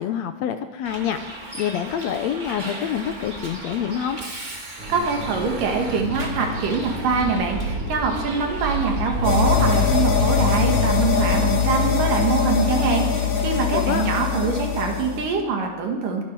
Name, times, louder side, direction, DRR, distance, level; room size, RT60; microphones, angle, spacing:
voice 1, 0.0-4.2 13.7-14.1, left 9 dB, 75° left, 8 dB, 1.7 m, -27 dB
Bus, 0.8-11.4, right 1 dB, 25° right, 1.0 m, -33 dB
voice 2, 4.6-16.2, right 5 dB, 80° right, 2 dB, 3.5 m, -24 dB
sound 1, 4.8-15.3, right 1 dB, 45° right, 5.7 m, -33 dB
sound 2, 9.2-15.3, left 8 dB, 50° left, 2.9 m, -22 dB
23.5 x 11.0 x 4.7 m, 1.2 s
omnidirectional pair, 3.7 m